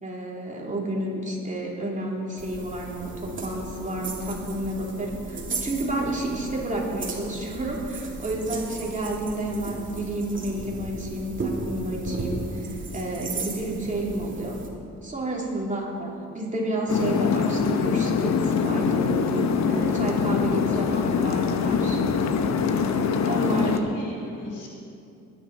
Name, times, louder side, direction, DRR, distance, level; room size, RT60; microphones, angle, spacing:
voice 1, 0.0-14.6 15.0-22.0 23.2-23.8, right 1 dB, 25° right, -3 dB, 3.1 m, -30 dB
sound 1, 2.4-14.7, right 3 dB, 40° right, 2.6 m, -35 dB
sound 2, 16.9-23.8, left 6 dB, 65° left, 1.0 m, -24 dB
voice 2, 23.1-24.7, left 1 dB, 80° left, -2 dB, 4.0 m, -36 dB
22.0 x 10.0 x 4.2 m, 2.6 s
cardioid pair, 90°, 30 cm